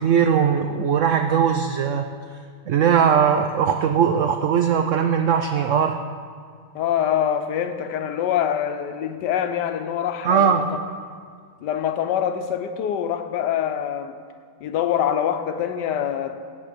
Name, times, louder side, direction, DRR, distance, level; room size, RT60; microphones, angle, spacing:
voice 1, 0.0-2.0 2.7-6.0 10.2-10.7, right 7 dB, 75° right, 0.7 m, -19 dB
voice 2, 6.7-10.8 11.6-14.2 14.6-16.4, left 9 dB, 80° left, 1.3 m, -25 dB
16.0 x 7.4 x 5.2 m
omnidirectional pair, 1.8 m